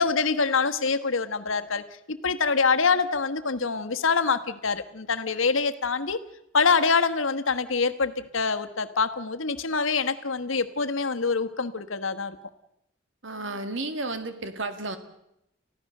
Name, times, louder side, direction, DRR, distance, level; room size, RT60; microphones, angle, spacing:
voice 1, 0.0-6.2 6.5-12.4, left 4 dB, 80° left, 8 dB, 1.3 m, -25 dB
voice 2, 13.2-15.0, right 2 dB, 70° right, 9 dB, 2.1 m, -32 dB
30.0 x 15.0 x 6.6 m, 0.82 s
head